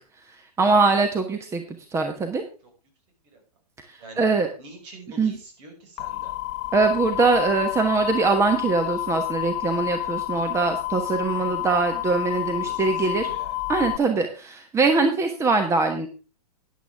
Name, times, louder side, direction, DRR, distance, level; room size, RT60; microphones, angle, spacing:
voice 1, 0.3-2.4 3.8-4.5 5.2-5.3 6.7-13.3 13.7-16.1, right 4 dB, 15° right, 6 dB, 1.2 m, -22 dB
voice 2, 4.6-6.3 12.6-13.5, right 3 dB, 50° right, 3 dB, 5.8 m, -45 dB
sound 1, 6.0-14.0, left 18 dB, 50° left, 0.8 m, -29 dB
13.5 x 10.5 x 3.5 m, 0.33 s
hypercardioid pair, 115°, 20 cm